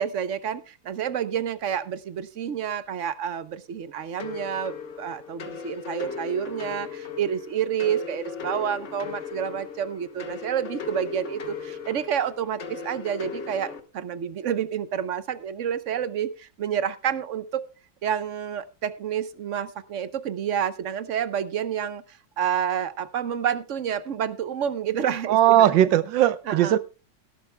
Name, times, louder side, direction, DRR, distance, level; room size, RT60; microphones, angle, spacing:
voice 1, 0.0-17.6 18.0-25.8 26.5-26.8, right 9 dB, 55° right, 0.9 m, -29 dB
sound 1, 4.2-13.8, left 5 dB, 45° left, 1.5 m, -37 dB
voice 2, 25.3-26.8, right 12 dB, 90° right, 1.5 m, -19 dB
17.5 x 12.5 x 2.2 m
omnidirectional pair, 2.0 m